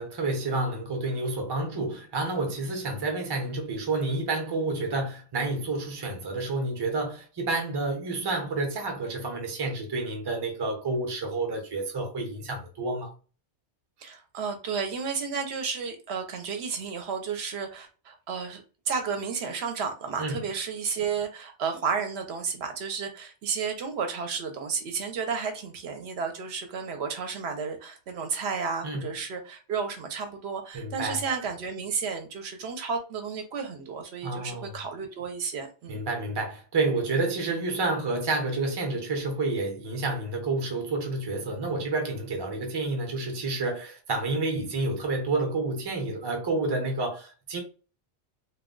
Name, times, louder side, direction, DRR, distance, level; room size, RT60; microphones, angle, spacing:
voice 1, 0.0-13.1 20.2-20.4 28.8-29.1 30.7-31.2 34.2-34.7 35.9-47.6, right 2 dB, 25° right, 0.6 m, -29 dB
voice 2, 14.0-36.0, right 5 dB, 70° right, 0.8 m, -32 dB
2.2 x 2.2 x 3.6 m
omnidirectional pair, 1.2 m